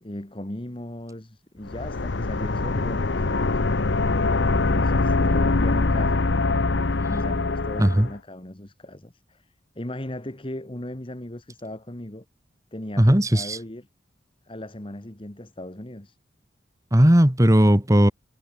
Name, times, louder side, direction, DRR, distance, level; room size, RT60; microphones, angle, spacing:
voice 1, 0.0-3.6 4.5-6.3 7.1-12.2 12.7-13.9 14.5-16.2, left 1 dB, 30° left, 1.6 m, -37 dB
sound 1, 1.6-8.1, left 3 dB, 75° left, 0.9 m, -23 dB
voice 2, 13.0-13.6 16.9-18.1, equal, 20° right, 1.5 m, -17 dB
head